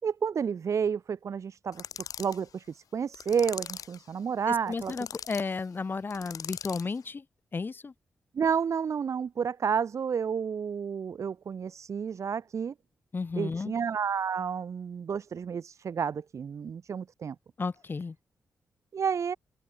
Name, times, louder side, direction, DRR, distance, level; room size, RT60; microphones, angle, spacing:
voice 1, 0.0-1.8 2.2-4.9 8.3-12.7 13.4-17.3 18.9-19.4, right 7 dB, 60° right, 4.8 m, -30 dB
sound 1, 1.7-2.4 3.1-4.0 4.7-5.4 6.1-6.9, left 9 dB, 90° left, 7.7 m, -41 dB
voice 2, 4.5-7.2 7.5-7.9 13.1-13.7 17.6-18.2, left 4 dB, 35° left, 8.0 m, -33 dB
wide cardioid pair, 125°, 6 cm